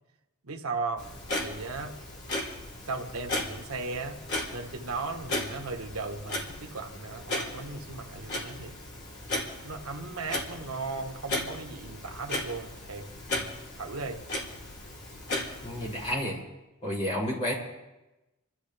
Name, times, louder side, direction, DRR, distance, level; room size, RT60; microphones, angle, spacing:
voice 1, 0.4-2.0 2.9-4.2 4.5-8.8 9.6-13.1 13.8-14.2, right 3 dB, 90° right, 1.3 m, -36 dB
Clock, 1.0-16.1, left 1 dB, 55° left, 3.5 m, -36 dB
voice 2, 15.6-16.4 16.8-17.5, left 1 dB, 30° left, 5.6 m, -30 dB
29.5 x 13.0 x 3.4 m
head